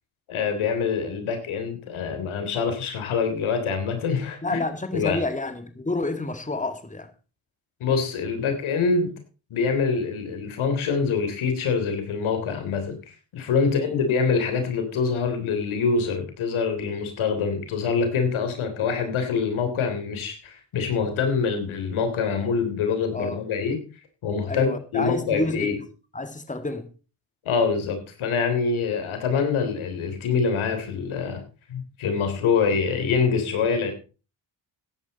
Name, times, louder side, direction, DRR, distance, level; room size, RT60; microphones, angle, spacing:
voice 1, 0.3-4.6 4.9-5.2 7.8-9.1 9.5-23.8 24.2-25.8 27.4-31.4 31.7-33.9, left 5 dB, 80° left, 3.4 m, -25 dB
voice 2, 4.4-7.1 13.6-13.9 23.1-23.4 24.5-25.7 26.1-26.9, left 2 dB, 15° left, 2.0 m, -29 dB
14.5 x 11.0 x 4.2 m
cardioid pair, 65°, 48 cm